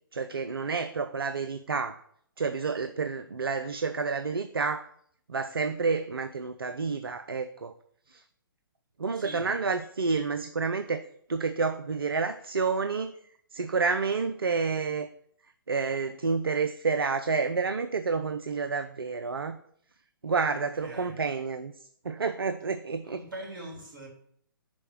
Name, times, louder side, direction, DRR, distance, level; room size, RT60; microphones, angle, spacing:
voice 1, 0.1-2.0 2.4-4.8 5.3-7.7 8.1-8.2 9.0-11.0 11.3-13.1 13.5-15.1 15.7-19.6 20.2-21.7 22.0-23.2, right 4 dB, 80° right, 9 dB, 0.5 m, -29 dB
voice 2, 9.1-9.5 20.5-21.2 23.1-24.1, right 1 dB, 60° right, -2 dB, 3.4 m, -42 dB
5.5 x 5.2 x 6.6 m, 0.66 s
figure-of-eight pair, 125°, 12 cm